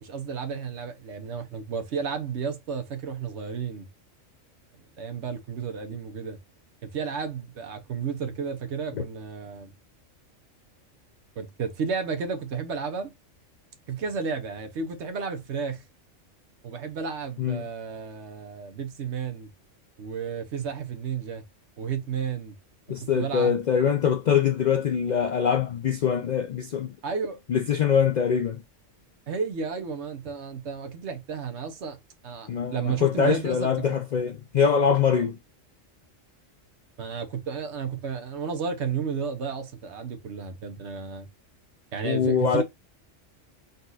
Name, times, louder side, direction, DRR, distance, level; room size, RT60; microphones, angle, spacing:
voice 1, 0.0-3.9 5.0-6.4 6.8-9.7 11.4-13.1 13.9-15.8 16.6-19.5 20.0-21.4 21.8-22.6 22.9-23.6 27.0-27.4 29.3-33.9 35.1-35.2 37.0-41.3 41.9-42.6, right 6 dB, 60° right, 1.0 m, -32 dB
voice 2, 22.9-26.9 27.5-28.6 32.5-35.4 42.0-42.6, left 7 dB, 85° left, 0.4 m, -23 dB
4.1 x 2.4 x 3.9 m
omnidirectional pair, 1.3 m